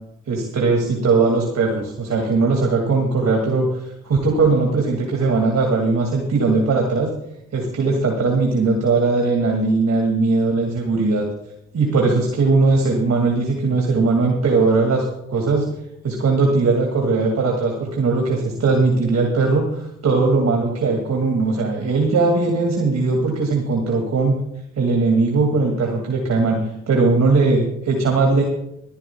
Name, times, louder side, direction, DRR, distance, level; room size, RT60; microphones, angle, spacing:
voice 1, 0.3-7.1 7.5-11.3 11.7-15.7 16.0-24.3 24.8-26.6 26.9-28.4, right 3 dB, 50° right, 1 dB, 2.5 m, -19 dB
25.5 x 11.0 x 2.4 m, 0.80 s
hypercardioid pair, 40°, 34 cm